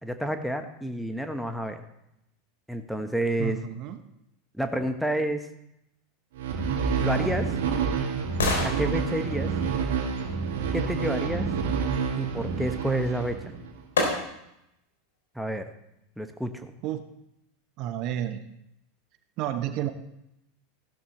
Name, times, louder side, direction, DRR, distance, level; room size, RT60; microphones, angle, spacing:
voice 1, 0.0-1.8 2.7-3.6 4.5-5.5 7.0-7.5 8.6-9.5 10.7-11.5 12.2-13.4 15.3-15.7 16.2-16.7, right 1 dB, ahead, 6 dB, 1.2 m, -29 dB
voice 2, 3.4-4.0 16.8-17.1 17.8-18.5 19.4-19.9, right 11 dB, 45° right, 9 dB, 0.9 m, -31 dB
sound 1, 6.4-13.8, right 6 dB, 65° right, 2.0 m, -28 dB
sound 2, 6.8-11.0 13.1-13.2 14.0-14.6 15.1-15.2, left 3 dB, 75° left, 3.4 m, -32 dB
15.5 x 12.0 x 3.3 m, 0.82 s
figure-of-eight pair, 85°, 0 cm